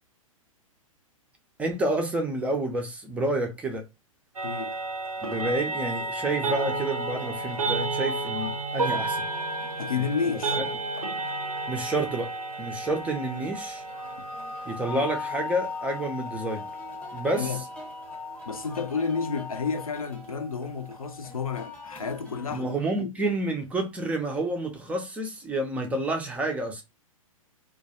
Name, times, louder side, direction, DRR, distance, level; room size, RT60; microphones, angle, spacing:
voice 1, 1.6-3.8 5.2-9.3 10.5-10.6 11.7-12.3 12.6-13.8 14.7-16.6 17.1-17.6 22.5-26.8, right 2 dB, 5° right, 0.4 m, -29 dB
voice 2, 4.4-4.8 9.8-10.6 14.9-15.1 17.3-17.6 18.5-23.1, left 5 dB, 75° left, 0.4 m, -31 dB
sound 1, 4.4-21.6, right 3 dB, 80° right, 0.5 m, -33 dB
sound 2, 5.7-22.7, left 6 dB, 10° left, 0.7 m, -41 dB
2.2 x 2.2 x 2.7 m
figure-of-eight pair, 105°, 18 cm